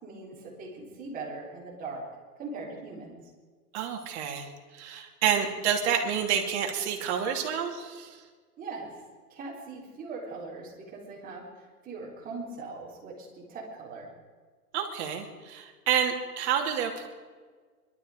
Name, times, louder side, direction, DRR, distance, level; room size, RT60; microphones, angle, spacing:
voice 1, 0.0-2.1 2.4-3.2 8.6-8.9 9.3-14.1, right 3 dB, 20° right, -3 dB, 4.0 m, -40 dB
voice 2, 3.7-8.2 14.7-17.1, right 8 dB, 45° right, 2 dB, 2.7 m, -29 dB
22.5 x 12.5 x 5.1 m, 1.5 s
hypercardioid pair, 145°, 46 cm